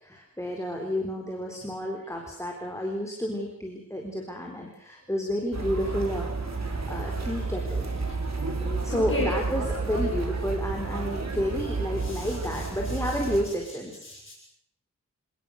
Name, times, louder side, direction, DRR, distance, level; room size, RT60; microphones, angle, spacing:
voice 1, 0.0-7.8 8.8-14.0, equal, 10° left, 0 dB, 4.2 m, -31 dB
sound 1, 5.5-13.4, right 3 dB, 60° right, 4.7 m, -31 dB
voice 2, 8.5-9.4 9.9-10.1 12.0-13.2 14.0-14.3, left 1 dB, 45° left, -2 dB, 6.4 m, -35 dB
28.5 x 19.5 x 6.6 m, 0.74 s
wide cardioid pair, 100°, 30 cm